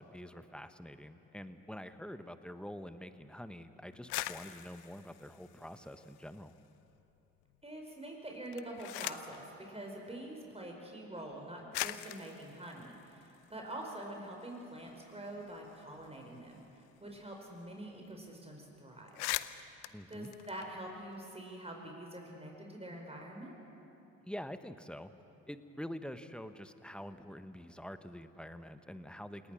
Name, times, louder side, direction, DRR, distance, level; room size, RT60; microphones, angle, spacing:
voice 1, 0.0-6.5 19.9-20.3 24.2-25.1 25.5-29.5, equal, ahead, 11 dB, 1.2 m, -46 dB
sound 1, 3.9-6.5 6.9-7.6 8.3-9.4 10.5-10.6 11.3-11.4 11.7-14.0 14.4-14.5 14.8-17.4 17.6-17.8 18.0-18.3 18.7-18.8 19.0-21.2, left 17 dB, 75° left, 0.7 m, -43 dB
voice 2, 7.6-19.4 20.1-23.6, right 1 dB, 15° right, 0 dB, 5.0 m, -46 dB
28.5 x 18.5 x 6.4 m, 2.9 s
hypercardioid pair, 50°, 38 cm